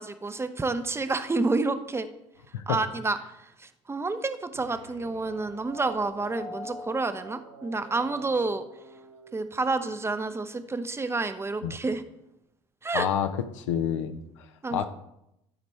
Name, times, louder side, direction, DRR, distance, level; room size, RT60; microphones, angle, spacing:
voice 1, 0.0-2.1 2.7-8.6 9.3-12.0 12.8-13.1 14.6-14.9, right 3 dB, 15° right, 10 dB, 0.6 m, -29 dB
sound 1, 4.5-10.1, right 1 dB, 85° right, 0.7 m, -45 dB
voice 2, 12.9-13.3 13.5-14.9, left 9 dB, 75° left, 9 dB, 0.6 m, -29 dB
12.5 x 5.2 x 3.2 m, 0.82 s
figure-of-eight pair, 60°, 16 cm